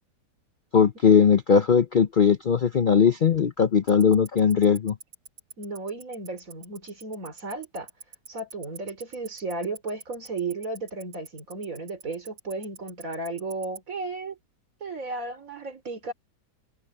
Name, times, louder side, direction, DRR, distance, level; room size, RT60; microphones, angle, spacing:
voice 1, 0.7-5.0, left 6 dB, 90° left, 0.4 m, -19 dB
Tick-tock, 3.9-13.8, right 5 dB, 80° right, 4.7 m, -42 dB
voice 2, 5.6-7.9 8.3-14.4 14.8-16.1, right 3 dB, 50° right, 4.4 m, -34 dB
omnidirectional pair, 1.8 m